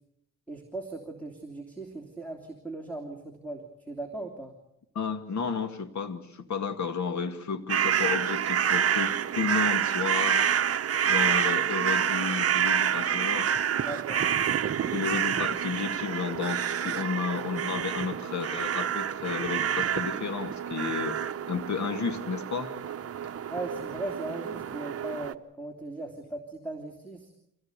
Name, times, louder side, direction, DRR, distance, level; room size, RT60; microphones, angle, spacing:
voice 1, 0.5-3.6 3.9-4.5 13.8-14.2 14.6-15.0 23.5-27.3, right 2 dB, 5° left, 3 dB, 3.1 m, -38 dB
voice 2, 4.9-10.4 11.1-13.5 14.9-21.2 21.5-22.7, left 5 dB, 50° left, 8 dB, 2.1 m, -32 dB
sound 1, 7.7-25.3, right 9 dB, 40° right, 0.9 m, -28 dB
25.0 x 17.0 x 8.3 m, 0.81 s
cardioid pair, 115°, 36 cm